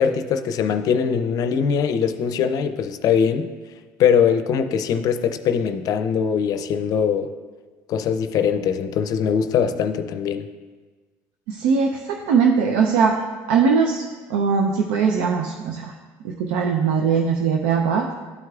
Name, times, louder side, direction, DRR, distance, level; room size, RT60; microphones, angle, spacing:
voice 1, 0.0-3.5 4.0-7.3 7.9-10.5, left 7 dB, 55° left, 9 dB, 0.5 m, -21 dB
voice 2, 11.5-13.2 13.5-14.0 14.3-15.9 16.2-18.1, right 5 dB, 90° right, 2 dB, 0.5 m, -20 dB
12.5 x 4.7 x 2.4 m, 1.4 s
supercardioid pair, 100°, 7 cm